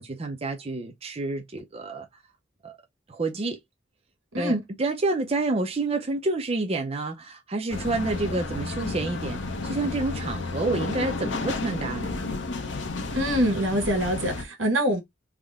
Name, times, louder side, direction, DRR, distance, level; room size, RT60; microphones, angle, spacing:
voice 1, 0.0-2.1 2.6-2.7 3.1-3.6 4.4-12.2, right 2 dB, 30° right, 0.5 m, -29 dB
sound 1, 7.7-14.4, left 3 dB, 70° left, 0.8 m, -32 dB
voice 2, 13.1-15.0, right 1 dB, 85° right, 1.5 m, -24 dB
3.5 x 2.1 x 3.5 m
head